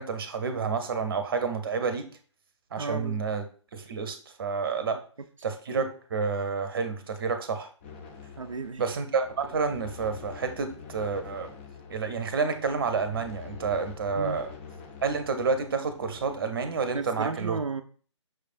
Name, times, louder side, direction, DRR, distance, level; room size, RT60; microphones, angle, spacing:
voice 1, 0.0-2.1 2.7-3.4 3.7-5.0 5.4-7.7 8.8-11.5 11.9-14.5 15.0-17.6, right 5 dB, 45° right, 8 dB, 0.7 m, -29 dB
voice 2, 2.8-3.2 8.4-8.8 14.1-14.4 16.9-17.8, right 4 dB, 85° right, 6 dB, 0.4 m, -33 dB
sound 1, 7.8-16.4, left 6 dB, 25° left, 0.5 m, -46 dB
6.1 x 3.2 x 2.5 m, 0.41 s
figure-of-eight pair, 140°, 16 cm